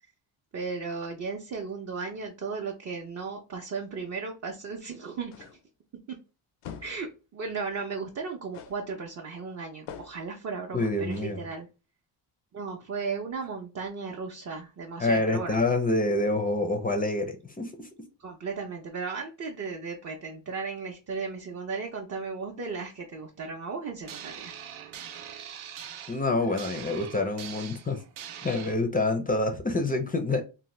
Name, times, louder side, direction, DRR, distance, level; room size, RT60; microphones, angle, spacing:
voice 1, 0.5-5.5 6.1-6.2 6.8-11.7 12.5-15.6 18.2-24.6, right 4 dB, 35° right, 0.5 m, -35 dB
sound 1, 5.3-5.7 6.6-7.1 8.5-8.9 9.9-10.3 11.1-11.4, left 8 dB, 85° left, 0.6 m, -44 dB
voice 2, 10.7-11.4 15.0-17.9 26.1-28.0 28.4-30.4, left 2 dB, 20° left, 0.4 m, -27 dB
sound 2, 24.1-28.7, right 9 dB, 80° right, 0.6 m, -43 dB
2.7 x 2.1 x 3.1 m
cardioid pair, 105°, 48 cm